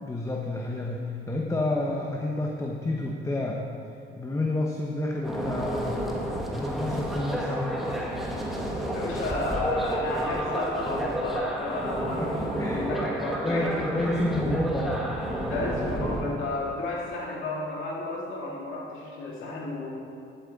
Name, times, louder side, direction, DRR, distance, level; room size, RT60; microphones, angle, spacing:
voice 1, 0.0-3.6 4.2-6.2 6.5-7.8 12.0-12.1 12.6-13.1 13.4-15.2, left 1 dB, 15° left, -1 dB, 1.0 m, -30 dB
sound 1, 5.2-16.2, equal, ahead, 1.6 m, -30 dB
voice 2, 8.9-13.9 15.5-19.9, left 2 dB, 90° left, -3 dB, 2.2 m, -32 dB
11.5 x 8.4 x 4.1 m, 2.6 s
cardioid pair, 90°, 20 cm